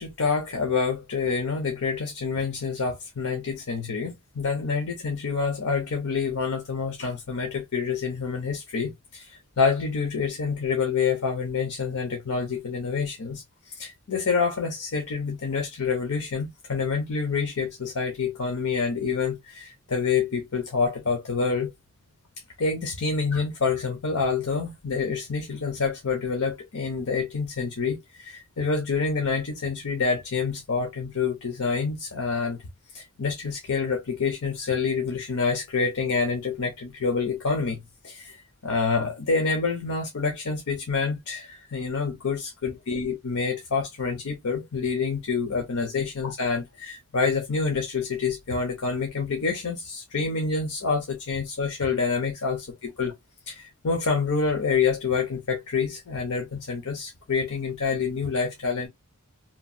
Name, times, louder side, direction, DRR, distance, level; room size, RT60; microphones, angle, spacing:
voice 1, 0.0-21.7 22.6-32.6 32.9-37.8 38.0-38.4 38.6-53.1 53.5-58.9, left 5 dB, 90° left, 0.7 m, -27 dB
2.9 x 2.2 x 2.6 m
head